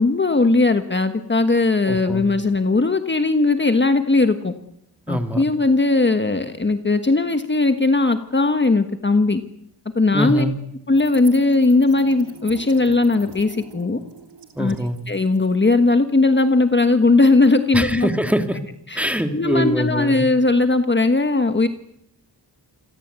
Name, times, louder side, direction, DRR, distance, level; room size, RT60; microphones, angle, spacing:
voice 1, 0.0-4.5 5.1-9.4 9.9-10.4 10.9-14.0 14.6-14.8 15.1-18.1 18.9-19.0 19.3-21.7, left 3 dB, 25° left, 8 dB, 1.4 m, -18 dB
voice 2, 1.8-2.3 5.1-5.4 10.1-10.5 14.6-15.0 17.7-18.6 18.9-20.2, equal, 5° right, 6 dB, 2.5 m, -23 dB
sound 1, 10.9-17.5, right 5 dB, 85° right, 3.2 m, -43 dB
28.5 x 22.0 x 8.3 m, 0.78 s
wide cardioid pair, 120°, 40 cm